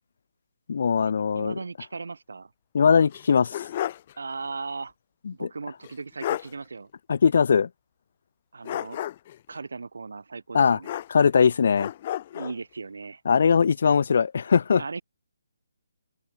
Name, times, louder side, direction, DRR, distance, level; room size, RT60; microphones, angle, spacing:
voice 1, 0.7-1.6 2.7-3.7 5.3-5.5 7.1-7.7 10.5-10.8 11.1-11.9 13.3-14.8, left 6 dB, 55° left, 0.4 m, -20 dB
voice 2, 1.3-2.5 4.2-4.9 5.3-6.9 8.5-9.0 9.5-11.0 12.3-13.2 14.8-15.0, right 4 dB, 75° right, 3.9 m, -37 dB
sound 1, 3.1-4.1 4.5-4.6 5.8-5.9 6.2-6.5 8.6-9.4 10.8-11.4 11.8-12.6, left 12 dB, 35° left, 0.8 m, -32 dB
open air
figure-of-eight pair, 155°, 0 cm